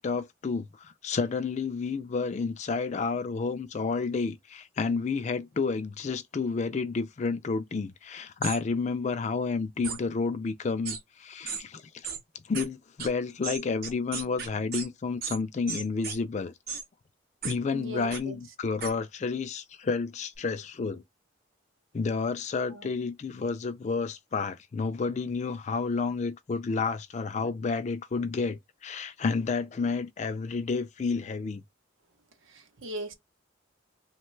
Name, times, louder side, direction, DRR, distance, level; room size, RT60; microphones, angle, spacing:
voice 1, 0.0-12.1 12.5-16.5 17.4-21.0 21.9-31.6, left 4 dB, 35° left, 0.3 m, -30 dB
sound 1, 8.4-8.6 9.8-10.0 10.8-11.0 11.5-11.6 12.0-12.2 12.5-12.6 13.0-13.1 13.4-14.9 15.2-15.4 15.7-16.2 16.7-16.8 17.4-17.5 18.1-18.2 18.8-18.9, right 6 dB, 50° right, 0.8 m, -35 dB
voice 2, 17.7-18.4 22.6-22.9 32.4-33.1, right 1 dB, 80° right, 0.7 m, -39 dB
3.1 x 2.2 x 3.1 m
head